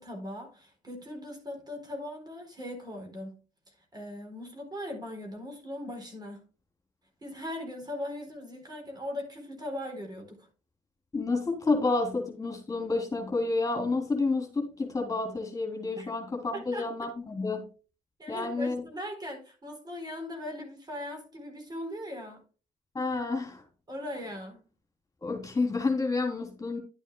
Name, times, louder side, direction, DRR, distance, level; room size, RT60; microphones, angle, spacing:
voice 1, 0.0-3.4 3.7-6.5 7.2-10.5 16.0-16.1 16.5-16.9 18.2-22.4 23.9-24.6, left 1 dB, 30° right, 4.0 m, -39 dB
voice 2, 11.1-17.7 18.3-18.8 22.9-23.6 25.2-26.8, left 3 dB, 25° left, 3.4 m, -29 dB
11.5 x 9.1 x 2.3 m
supercardioid pair, 65°, 14 cm